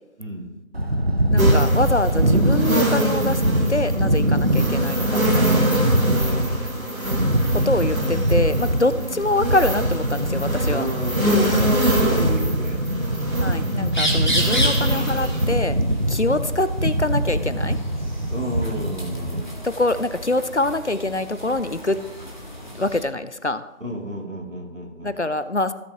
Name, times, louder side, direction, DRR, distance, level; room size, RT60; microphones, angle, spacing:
voice 1, 0.2-0.5 6.2-7.3 8.9-9.2 10.6-12.8 18.3-19.6 23.8-25.2, right 1 dB, 70° right, 0 dB, 2.8 m, -32 dB
sound 1, 0.7-19.4, right 1 dB, 50° right, 0.8 m, -22 dB
voice 2, 1.3-3.4 3.7-5.5 7.5-10.9 13.4-15.8 16.1-17.8 19.6-22.0 22.7-23.6 25.0-25.7, left 2 dB, 55° left, 14 dB, 0.6 m, -24 dB
sound 2, 1.4-15.5, right 1 dB, 85° right, 2.2 m, -26 dB
sound 3, 13.9-23.1, equal, 35° left, 1.7 m, -31 dB
16.0 x 7.5 x 2.9 m, 0.98 s
figure-of-eight pair, 180°, 40 cm